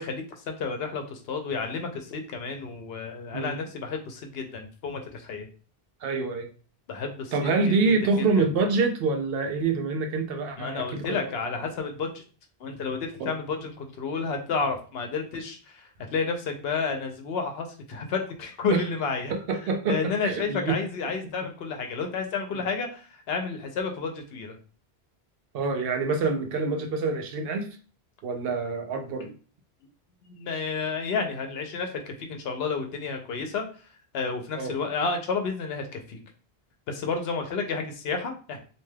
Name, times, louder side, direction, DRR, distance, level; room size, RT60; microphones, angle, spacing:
voice 1, 0.0-5.5 6.9-7.8 8.4-8.5 10.6-12.2 12.6-19.3 19.9-24.6 29.2-29.3 30.3-33.6 34.1-36.2 36.9-38.6, left 4 dB, 75° left, 5 dB, 0.8 m, -31 dB
voice 2, 6.0-6.5 7.3-11.3 13.2-13.3 18.7-18.8 19.3-20.8 21.0-21.1 25.5-27.8 28.2-29.3 34.6-34.8, right 4 dB, 70° right, 5 dB, 0.8 m, -26 dB
2.6 x 2.2 x 3.2 m, 0.38 s
omnidirectional pair, 1.0 m